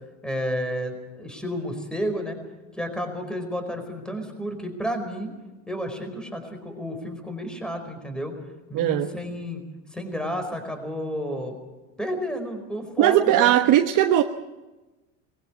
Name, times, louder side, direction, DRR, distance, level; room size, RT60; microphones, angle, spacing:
voice 1, 0.2-2.4 2.8-5.3 5.7-8.3 8.7-9.6 9.9-11.5 12.0-13.5, equal, ahead, 6 dB, 4.6 m, -31 dB
voice 2, 8.7-9.1 13.0-14.2, right 12 dB, 55° right, 6 dB, 1.2 m, -18 dB
21.0 x 16.0 x 8.5 m, 1.1 s
supercardioid pair, 115°, 38 cm